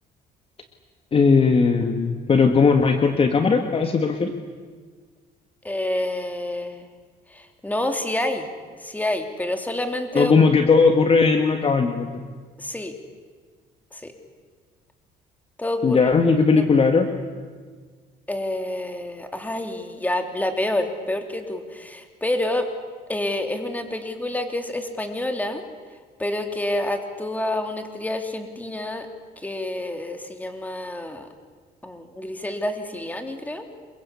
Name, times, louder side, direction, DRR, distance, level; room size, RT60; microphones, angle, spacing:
voice 1, 1.1-4.3 10.1-12.1 15.8-17.1, left 4 dB, 35° left, 6 dB, 1.9 m, -18 dB
voice 2, 5.6-6.9 7.3-8.5 8.8-10.3 12.6-12.9 13.9-14.1 15.6-16.1 16.6-16.7 18.3-22.7 23.1-25.6 26.2-29.1 29.4-31.3 31.8-33.7, left 1 dB, 10° left, 6 dB, 3.3 m, -28 dB
27.5 x 23.0 x 8.5 m, 1.5 s
cardioid pair, 110°, 17 cm